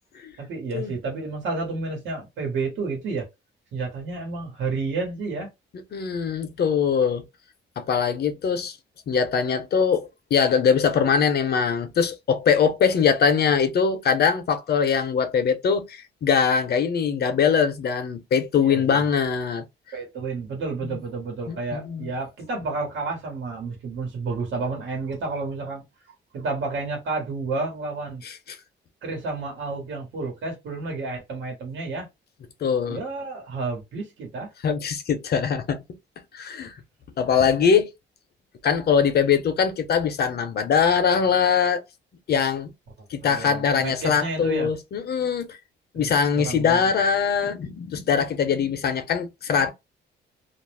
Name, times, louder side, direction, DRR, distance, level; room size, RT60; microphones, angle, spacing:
voice 1, 0.4-3.3 3.7-5.5 18.6-19.0 19.9-25.8 26.3-28.2 29.0-32.1 32.9-34.5 43.2-44.7 45.9-46.8, right 3 dB, 70° right, 1.2 m, -30 dB
voice 2, 5.9-7.2 7.8-8.8 9.1-19.7 20.8-21.0 21.5-22.1 28.2-28.6 32.6-33.0 34.6-35.8 36.3-36.7 37.2-37.9 38.6-41.8 42.3-42.7 43.1-45.6 45.9-49.7, left 6 dB, 55° left, 0.7 m, -22 dB
2.5 x 2.0 x 3.2 m
cardioid pair, 90°, 20 cm